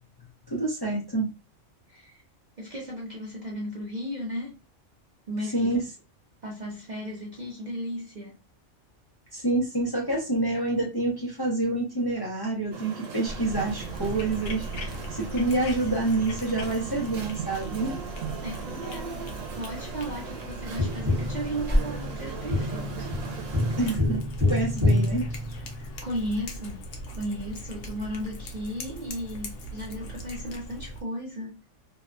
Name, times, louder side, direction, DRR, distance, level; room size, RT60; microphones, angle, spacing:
voice 1, 0.5-1.3 5.5-5.8 9.3-18.0 23.8-25.3, right 2 dB, 25° left, 0.5 m, -27 dB
voice 2, 1.9-2.2 2.6-4.6 5.3-5.8 6.4-8.4 18.4-19.3 19.6-23.6 26.0-31.6, equal, 45° right, 0.6 m, -35 dB
sound 1, 12.7-24.0, right 6 dB, 90° right, 1.0 m, -38 dB
Cat, 13.3-31.0, equal, 75° left, 1.0 m, -39 dB
Tap, 20.8-26.1 28.7-28.8, left 1 dB, 15° right, 0.8 m, -27 dB
2.7 x 2.2 x 2.4 m
omnidirectional pair, 1.3 m